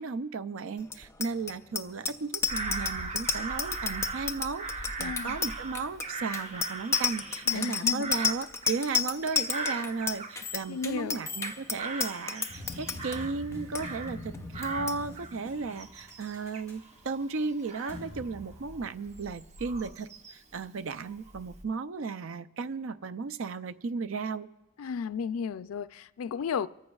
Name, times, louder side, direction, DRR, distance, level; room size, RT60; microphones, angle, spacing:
voice 1, 0.0-24.5, right 4 dB, 70° right, 0.5 m, -35 dB
Bicycle bell, 0.8-13.2 13.5-13.8 14.1-14.4 14.6-15.0, left 5 dB, 15° left, 0.5 m, -31 dB
Bird vocalization bird call bird song / Crow, 2.5-10.8 11.1-14.3 14.5-20.6 21.1-21.6, right 3 dB, 35° right, 1.0 m, -40 dB
voice 2, 5.0-5.4 7.5-8.1 10.7-11.2 24.8-26.7, left 6 dB, 90° left, 0.4 m, -33 dB
sound 1, 12.5-19.3, left 1 dB, 15° right, 6.1 m, -44 dB
28.5 x 14.0 x 2.4 m
head